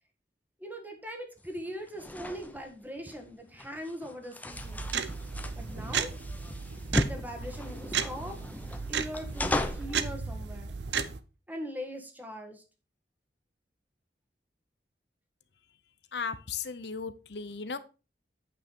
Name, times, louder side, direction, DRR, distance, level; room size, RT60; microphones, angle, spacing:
voice 1, 0.6-4.9 5.5-6.1 6.9-8.4 8.7-10.7 11.5-12.6, equal, 10° right, 4 dB, 1.7 m, -41 dB
sound 1, 1.4-10.0, left 1 dB, 10° left, 0.7 m, -36 dB
sound 2, 4.5-11.2, right 6 dB, 75° right, 0.7 m, -35 dB
voice 2, 16.1-17.8, left 5 dB, 70° left, 13 dB, 0.8 m, -36 dB
9.1 x 5.6 x 4.7 m, 0.32 s
head